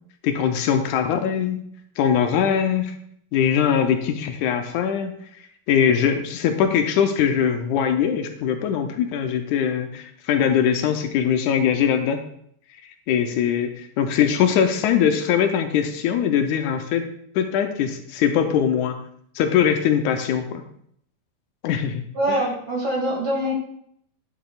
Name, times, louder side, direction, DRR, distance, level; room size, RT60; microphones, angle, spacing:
voice 1, 0.2-1.6 2.0-2.9 3.3-5.1 5.7-12.2 13.1-17.1 17.4-19.0 19.4-20.6 21.6-22.0 22.3-22.4, left 8 dB, 85° left, 7 dB, 2.0 m, -21 dB
voice 2, 22.1-23.5, right 1 dB, 40° right, -4 dB, 2.6 m, -24 dB
10.0 x 7.3 x 2.4 m, 0.68 s
omnidirectional pair, 3.4 m